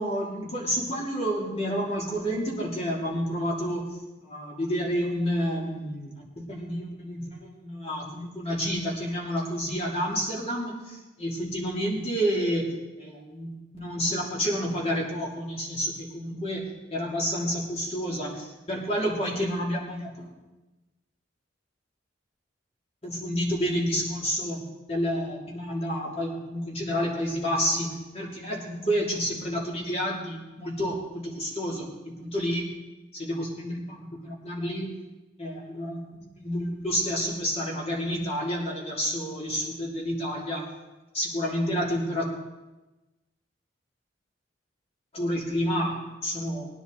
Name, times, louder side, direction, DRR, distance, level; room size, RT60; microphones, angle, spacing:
voice 1, 0.0-16.6 16.9-20.3 23.0-24.6 24.9-27.9 28.1-32.6 33.1-34.9 35.4-36.0 36.4-40.7 41.1-42.3 45.1-46.7, equal, 35° left, -3 dB, 3.1 m, -29 dB
19.5 x 10.0 x 4.1 m, 1.1 s
head